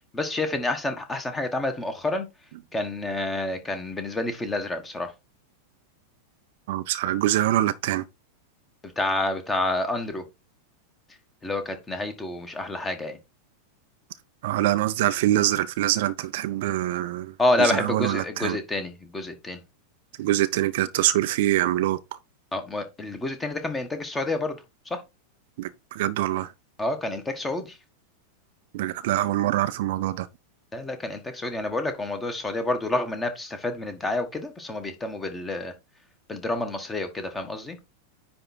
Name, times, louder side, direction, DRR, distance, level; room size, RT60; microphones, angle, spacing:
voice 1, 0.1-2.3 2.7-5.1 8.8-10.2 11.4-13.2 17.4-19.6 22.5-24.6 24.9-25.0 26.8-27.8 30.7-35.7 36.3-37.8, left 2 dB, 15° left, 1.6 m, -28 dB
voice 2, 6.7-8.0 14.4-18.6 20.2-22.0 25.6-26.5 28.7-30.3, right 14 dB, 50° right, 0.5 m, -24 dB
9.8 x 3.5 x 4.2 m
figure-of-eight pair, 90°, 0 cm